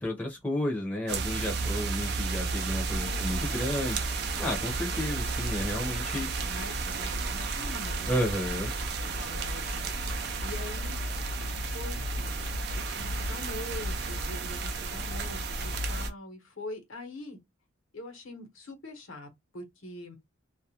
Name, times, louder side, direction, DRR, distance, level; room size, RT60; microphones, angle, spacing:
voice 1, 0.0-4.0 4.4-6.3 8.1-8.7, left 1 dB, 5° left, 0.7 m, -32 dB
sound 1, 1.1-16.1, right 3 dB, 50° right, 0.4 m, -32 dB
voice 2, 2.9-3.3 6.3-8.4 9.0-11.0 11.7-12.3 12.8-17.4 17.9-19.3 19.5-20.2, left 2 dB, 70° left, 1.0 m, -43 dB
2.4 x 2.0 x 2.8 m
head